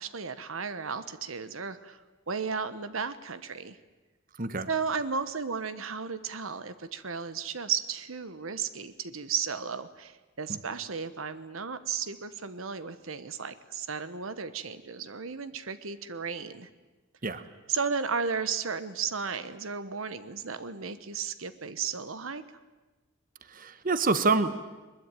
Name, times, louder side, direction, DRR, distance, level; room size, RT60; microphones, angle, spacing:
voice 1, 0.0-2.0 2.3-3.8 4.7-16.7 17.7-22.4, right 6 dB, 85° right, 13 dB, 1.2 m, -34 dB
voice 2, 4.4-4.7 10.5-10.6 17.2-17.4 23.5-24.6, right 3 dB, 45° right, 12 dB, 1.2 m, -27 dB
22.0 x 21.5 x 9.2 m, 1.2 s
head